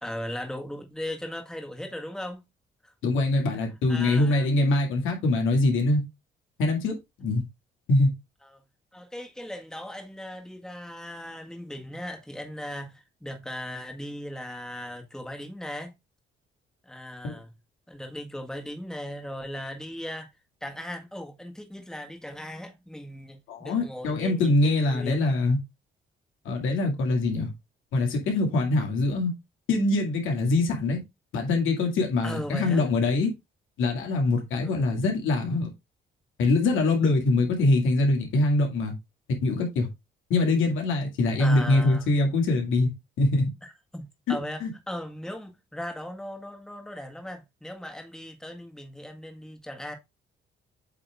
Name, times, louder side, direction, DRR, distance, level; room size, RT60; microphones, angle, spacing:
voice 1, 0.0-2.4 2.8-2.9 3.5-3.6 3.9-4.5 8.9-15.9 16.8-17.5 17.9-20.3 20.6-25.3 32.2-32.8 34.6-34.9 41.4-42.0 43.6-49.9, equal, 5° left, 1.7 m, -38 dB
voice 2, 3.0-6.0 6.6-7.4 7.9-8.1 17.2-17.4 23.5-25.6 26.5-27.5 27.9-29.3 29.7-31.0 31.3-33.3 33.8-35.7 36.4-38.9 39.4-39.9 40.3-42.9 43.2-43.5 44.3-44.4 44.6-44.7, left 2 dB, 85° left, 2.2 m, -23 dB
8.3 x 3.6 x 3.5 m
cardioid pair, 90°, 20 cm